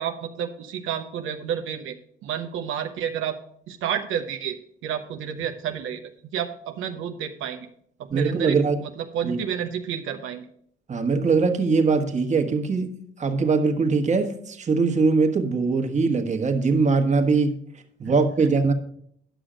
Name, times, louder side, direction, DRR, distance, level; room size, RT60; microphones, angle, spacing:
voice 1, 0.0-2.0 2.2-3.4 3.7-4.6 4.8-7.7 8.0-10.5 18.0-18.5, right 8 dB, 85° right, 0.8 m, -30 dB
voice 2, 8.1-8.8 9.2-9.4 10.9-17.5 18.0-18.7, right 4 dB, 35° right, 1.3 m, -22 dB
10.5 x 6.2 x 5.0 m
cardioid pair, 90°, 20 cm